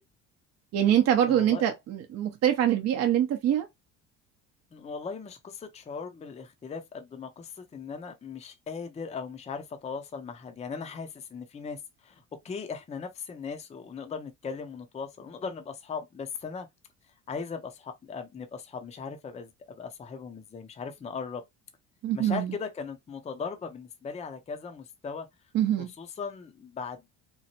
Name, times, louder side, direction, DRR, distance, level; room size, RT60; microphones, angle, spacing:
voice 1, 0.7-3.7 22.0-22.5 25.5-25.9, right 10 dB, 50° right, 0.6 m, -24 dB
voice 2, 1.2-1.7 4.7-16.7 17.3-21.4 22.1-25.3 25.8-27.1, left 5 dB, 20° left, 0.5 m, -38 dB
3.0 x 2.1 x 2.8 m
supercardioid pair, 90°, 34 cm